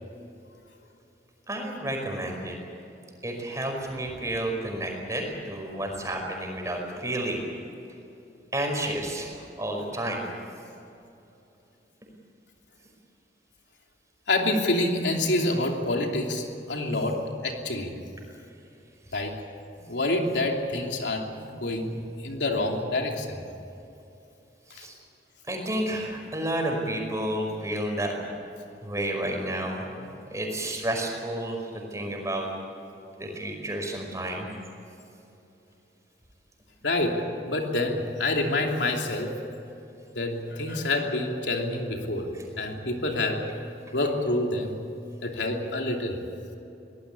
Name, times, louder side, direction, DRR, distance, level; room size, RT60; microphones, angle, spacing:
voice 1, 1.5-2.6 3.2-7.4 8.5-10.2 24.7-25.0 25.5-28.2 28.8-32.5 33.2-34.5 42.3-42.4, right 1 dB, 15° right, 1 dB, 5.1 m, -31 dB
voice 2, 14.3-17.9 19.1-19.4 19.8-23.4 24.8-24.9 36.8-39.3 40.1-43.5 43.9-44.8 45.2-46.2, left 2 dB, 80° left, 2 dB, 3.0 m, -27 dB
24.0 x 18.5 x 8.5 m, 2.8 s
head